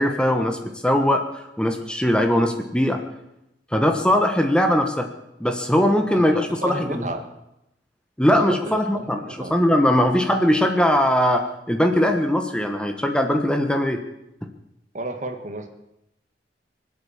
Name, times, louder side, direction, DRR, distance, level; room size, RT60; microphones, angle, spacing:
voice 1, 0.0-3.0 3.7-5.1 5.4-7.0 8.2-14.0, equal, 5° left, 5 dB, 1.2 m, -20 dB
voice 2, 6.1-7.3 8.3-9.5 14.9-15.7, right 1 dB, 45° right, 6 dB, 1.8 m, -32 dB
23.5 x 8.4 x 7.2 m, 0.87 s
head